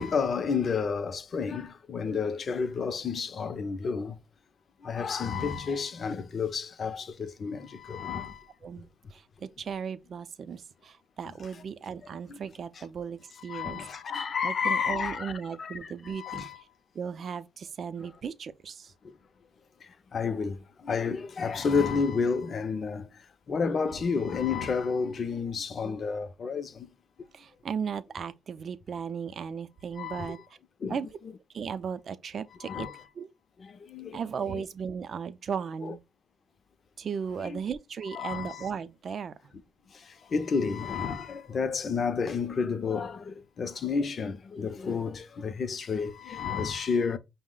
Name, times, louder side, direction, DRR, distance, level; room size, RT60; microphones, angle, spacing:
voice 1, 0.0-4.2 4.8-8.5 12.3-12.4 12.8-12.9 13.5-15.3 15.6-16.6 19.8-23.1 23.5-26.9 30.0-30.4 30.8-31.0 32.6-33.0 33.6-34.2 34.5-34.6 35.8-36.0 37.4-37.6 38.1-38.7 39.9-47.2, left 5 dB, 50° left, 0.5 m, -31 dB
voice 2, 8.6-13.8 14.4-16.5 16.9-18.9 27.3-30.4 30.9-31.1 31.5-32.9 33.2-33.3 34.1-36.0 37.0-39.3, right 6 dB, 50° right, 0.4 m, -36 dB
5.4 x 2.1 x 3.8 m
cardioid pair, 90°, 0 cm